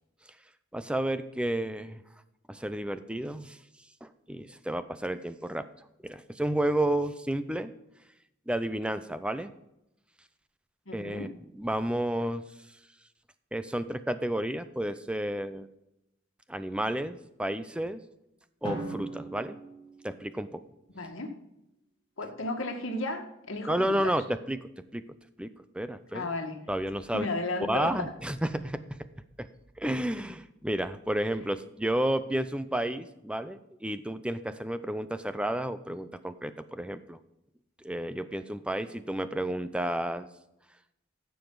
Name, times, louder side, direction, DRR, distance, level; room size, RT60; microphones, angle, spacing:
voice 1, 0.7-2.0 2.5-3.6 4.0-5.7 6.0-7.7 8.5-9.5 10.9-11.3 11.6-12.4 13.5-15.7 16.5-18.0 18.6-19.6 20.0-20.6 23.7-25.0 25.4-26.3 26.7-27.3 27.6-28.8 29.4-29.5 29.8-37.2 37.8-40.3, right 1 dB, 5° right, 12 dB, 0.5 m, -31 dB
voice 2, 10.9-11.3 20.9-21.4 22.2-24.2 26.1-26.6 27.1-28.1, left 2 dB, 75° left, 2 dB, 1.8 m, -34 dB
Drum, 18.6-20.7, right 1 dB, 20° left, 2.6 m, -39 dB
14.5 x 6.9 x 3.9 m, 0.88 s
head